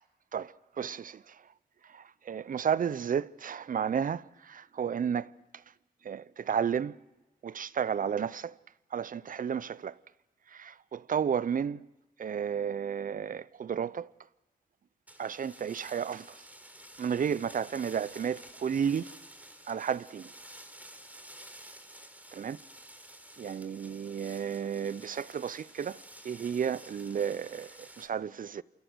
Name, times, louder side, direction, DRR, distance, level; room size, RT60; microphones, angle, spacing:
voice 1, 0.3-1.4 1.9-5.3 6.0-7.0 7.4-8.5 8.9-9.9 10.5-11.8 12.2-14.1 15.2-16.3 17.0-19.1 19.7-20.3 22.3-22.6 23.4-26.0 26.2-28.6, right 7 dB, 60° right, 0.7 m, -32 dB
sound 1, 15.1-28.1, right 1 dB, 10° right, 4.1 m, -51 dB
28.5 x 25.5 x 6.3 m
cardioid pair, 60°, 16 cm